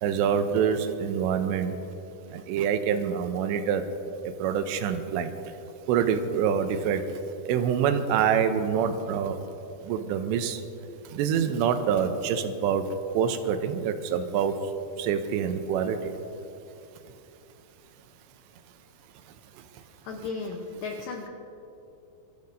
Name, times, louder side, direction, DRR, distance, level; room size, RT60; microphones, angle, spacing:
voice 1, 0.0-1.7 2.3-3.8 4.2-5.3 5.9-7.0 7.5-9.4 9.9-10.6 11.1-14.6 15.0-16.1, right 7 dB, 90° right, 7 dB, 3.0 m, -26 dB
voice 2, 20.0-21.3, left 4 dB, 70° left, 2 dB, 2.2 m, -35 dB
25.5 x 13.5 x 2.7 m, 2.8 s
omnidirectional pair, 4.9 m